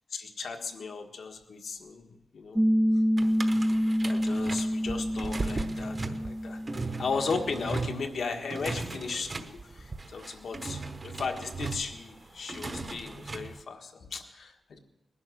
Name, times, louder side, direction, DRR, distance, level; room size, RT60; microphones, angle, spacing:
voice 1, 0.1-3.0 3.7-6.6 7.0-14.8, left 4 dB, 75° left, 4 dB, 1.6 m, -36 dB
Piano, 2.6-7.7, equal, 5° right, 0.4 m, -28 dB
sound 1, 3.2-13.6, right 3 dB, 35° right, 1.1 m, -37 dB
20.0 x 11.0 x 6.4 m, 1.0 s
wide cardioid pair, 135°, 0 cm